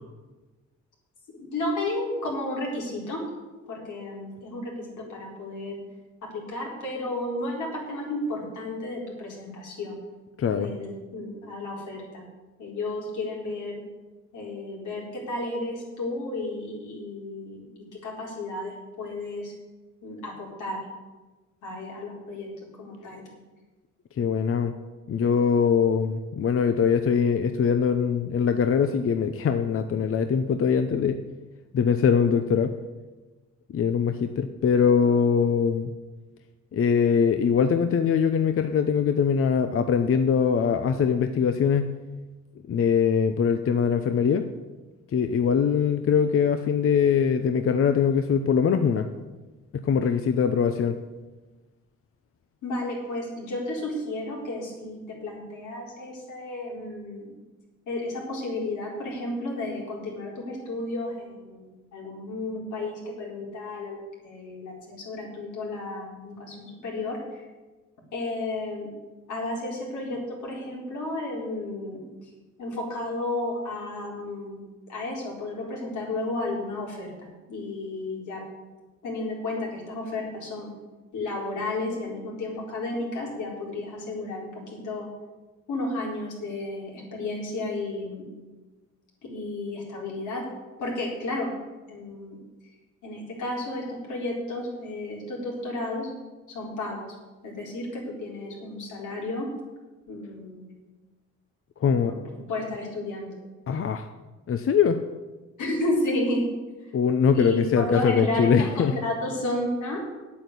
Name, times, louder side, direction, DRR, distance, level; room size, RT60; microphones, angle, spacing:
voice 1, 1.3-3.2 3.7-5.7 6.2-10.0 10.6-12.3 12.6-13.7 14.3-19.5 20.0-20.9 21.6-22.5 22.8-23.2 52.6-57.3 57.9-67.5 68.1-68.9 69.3-72.3 72.6-74.6 74.9-78.4 79.0-80.7 81.1-85.1 85.7-88.3 89.2-90.4 90.8-91.5 91.9-92.4 93.0-96.1 96.5-97.1 97.4-99.5 100.1-100.7 101.8-102.1 102.5-103.4 105.6-106.5 106.8-106.9 107.3-110.0, left 2 dB, 80° left, -2 dB, 4.4 m, -32 dB
voice 2, 10.4-10.7 24.2-24.7 25.1-31.2 31.7-32.7 33.7-35.9 36.7-41.9 42.7-44.4 45.1-49.0 49.7-51.0 101.8-102.1 103.7-104.1 104.5-105.0 106.9-109.0, left 6 dB, 45° left, 8 dB, 0.8 m, -22 dB
9.2 x 8.6 x 8.3 m, 1.2 s
cardioid pair, 90°, 30 cm